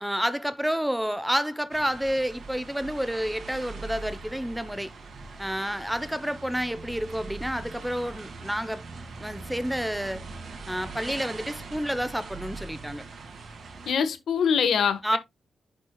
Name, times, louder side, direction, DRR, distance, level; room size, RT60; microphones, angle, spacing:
voice 1, 0.0-4.9 5.4-8.8 9.2-10.2 10.7-13.0 15.0-15.2, equal, 5° right, 0.7 m, -29 dB
sound 1, 1.7-13.9, right 3 dB, 60° right, 2.3 m, -41 dB
voice 2, 13.9-15.2, left 7 dB, 80° left, 1.3 m, -24 dB
10.5 x 6.2 x 2.2 m
wide cardioid pair, 115°, 0 cm